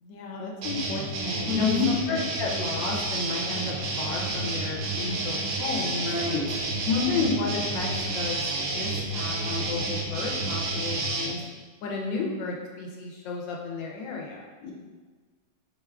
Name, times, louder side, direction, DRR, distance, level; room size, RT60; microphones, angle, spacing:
voice 1, 0.0-6.2 6.8-11.4 11.8-14.4, left 4 dB, 85° left, -1 dB, 1.4 m, -32 dB
sound 1, 0.6-11.3, right 2 dB, 70° right, 1.2 m, -30 dB
voice 2, 1.5-1.9 6.0-6.6 14.6-14.7, left 4 dB, 65° left, -3 dB, 1.1 m, -27 dB
4.6 x 2.2 x 3.5 m, 1.4 s
omnidirectional pair, 2.0 m